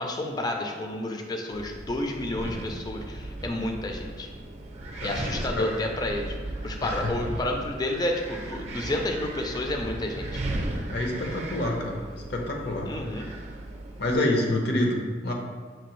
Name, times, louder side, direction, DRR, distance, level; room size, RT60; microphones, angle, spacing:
voice 1, 0.0-4.3 5.0-6.4 6.6-10.4 12.8-13.3, left 1 dB, 20° left, 3 dB, 0.4 m, -30 dB
Wind, 1.5-14.2, right 1 dB, 35° right, 0.5 m, -36 dB
voice 2, 6.8-7.1 10.9-12.0 12.3-12.9 13.2-13.3 14.0-15.3, left 1 dB, 65° left, 1 dB, 0.7 m, -27 dB
5.9 x 2.7 x 3.0 m, 1.5 s
head